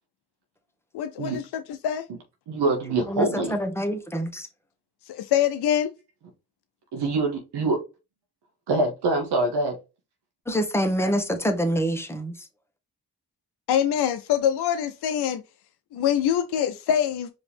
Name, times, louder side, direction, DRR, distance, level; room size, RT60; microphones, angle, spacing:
voice 1, 0.9-1.4 1.8-2.0 5.1-5.9 13.7-15.4 15.9-17.3, left 10 dB, 80° left, 0.5 m, -24 dB
voice 2, 2.5-3.6 6.9-7.8 8.7-9.8, right 2 dB, 80° right, 1.0 m, -24 dB
voice 3, 3.1-4.5 10.5-12.3, equal, 5° left, 1.2 m, -26 dB
4.8 x 2.9 x 3.4 m
supercardioid pair, 45°, 39 cm